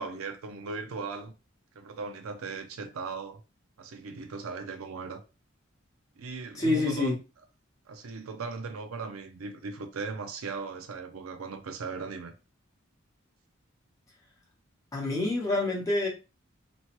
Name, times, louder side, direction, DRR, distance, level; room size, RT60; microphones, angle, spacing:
voice 1, 0.0-1.3 1.8-3.4 3.8-5.2 6.2-7.2 7.9-12.3, right 4 dB, 85° right, 0.5 m, -38 dB
voice 2, 6.6-7.1 14.9-16.1, left 2 dB, 15° left, 1.0 m, -27 dB
3.0 x 2.1 x 2.9 m
head